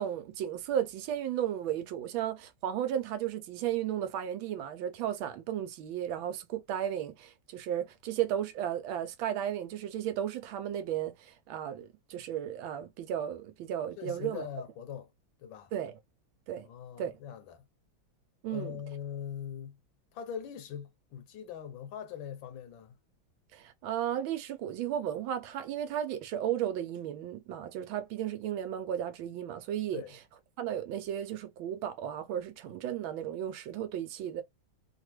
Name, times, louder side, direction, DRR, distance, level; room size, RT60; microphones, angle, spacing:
voice 1, 0.0-14.4 15.7-15.9 16.5-16.7 17.0-17.1 18.4-18.8 23.5-30.0 30.6-34.4, right 10 dB, 85° right, 1.4 m, -34 dB
voice 2, 14.0-15.1 15.4-15.7 16.6-17.7 18.5-19.8 20.1-23.0 29.9-30.1, left 8 dB, 80° left, 1.5 m, -41 dB
3.3 x 2.4 x 3.0 m
omnidirectional pair, 2.1 m